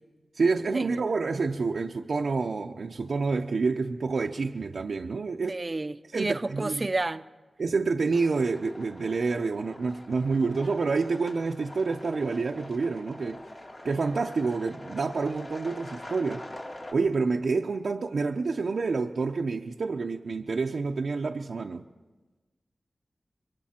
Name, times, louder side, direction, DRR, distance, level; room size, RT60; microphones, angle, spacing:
voice 1, 0.4-5.6 6.1-6.9 7.6-13.4 13.8-16.5 16.9-21.8, right 4 dB, 80° right, 0.6 m, -28 dB
voice 2, 5.5-7.2, right 2 dB, 35° right, 0.5 m, -30 dB
sound 1, 8.1-16.9, left 1 dB, 45° left, 2.6 m, -45 dB
26.0 x 23.0 x 4.4 m
wide cardioid pair, 85°, 0 cm